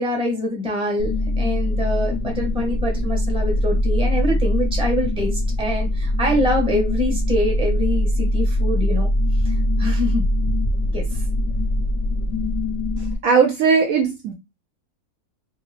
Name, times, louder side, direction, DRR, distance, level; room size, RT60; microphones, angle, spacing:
voice 1, 0.0-9.1 9.4-9.5 9.8-10.2 10.9-11.0, left 1 dB, 5° right, 0.8 m, -24 dB
sound 1, 1.0-13.1, left 1 dB, 60° left, 0.7 m, -22 dB
voice 2, 13.0-14.3, right 5 dB, 70° right, 0.9 m, -18 dB
2.7 x 2.7 x 3.2 m
omnidirectional pair, 1.7 m